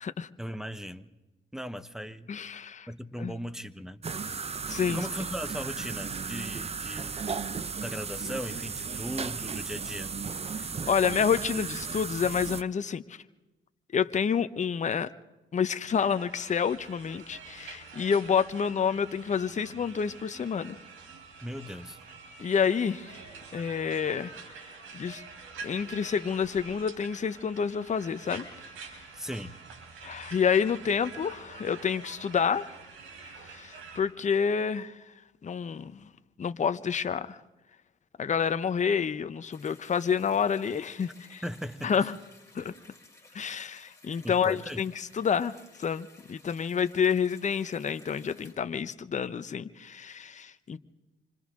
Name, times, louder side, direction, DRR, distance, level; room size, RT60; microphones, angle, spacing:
voice 1, 0.4-1.1 1.5-2.3 2.9-4.0 4.9-7.2 7.8-10.2 21.4-22.1 29.1-29.6 41.4-42.1 44.2-44.8, equal, ahead, 13 dB, 1.0 m, -38 dB
voice 2, 2.3-2.9 3.2-3.3 4.7-5.1 10.6-13.2 13.9-15.1 15.5-20.8 22.4-23.2 23.5-24.3 24.9-25.2 25.6-28.5 30.0-32.7 33.2-35.0 35.4-36.1 36.4-37.4 38.2-41.4 41.8-42.2 42.5-42.7 43.3-50.8, left 7 dB, 35° left, 11 dB, 0.9 m, -29 dB
sound 1, 4.0-12.6, right 5 dB, 30° right, 0.8 m, -35 dB
sound 2, 15.9-34.0, right 5 dB, 85° right, 4.4 m, -47 dB
sound 3, 39.5-48.5, left 3 dB, 15° left, 6.7 m, -56 dB
27.5 x 25.5 x 3.8 m, 1.1 s
cardioid pair, 90°, 20 cm